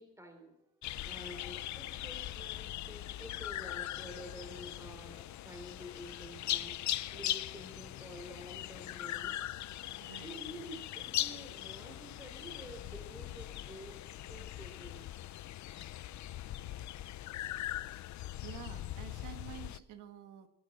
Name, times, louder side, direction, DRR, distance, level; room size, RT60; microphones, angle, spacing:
voice 1, 0.0-9.3 10.2-15.0, equal, 10° right, 6 dB, 3.1 m, -50 dB
sound 1, 0.8-19.8, left 13 dB, 70° left, 0.7 m, -40 dB
voice 2, 1.2-1.5 10.0-10.4 16.4-16.7 18.4-20.5, right 11 dB, 85° right, 9 dB, 1.5 m, -50 dB
22.0 x 11.5 x 4.2 m, 0.88 s
cardioid pair, 90°, 30 cm